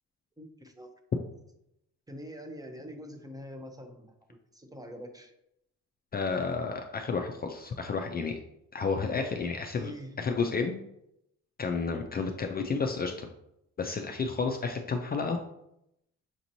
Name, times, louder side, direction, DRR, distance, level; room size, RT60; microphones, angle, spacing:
voice 1, 0.4-0.9 2.1-5.3 8.9-10.2, equal, 10° right, 5 dB, 0.6 m, -45 dB
voice 2, 6.1-8.4 8.7-9.9 10.2-10.8 11.6-13.3 13.8-15.4, left 4 dB, 30° left, 4 dB, 0.4 m, -31 dB
6.0 x 2.9 x 2.6 m, 0.80 s
cardioid pair, 90°, 30 cm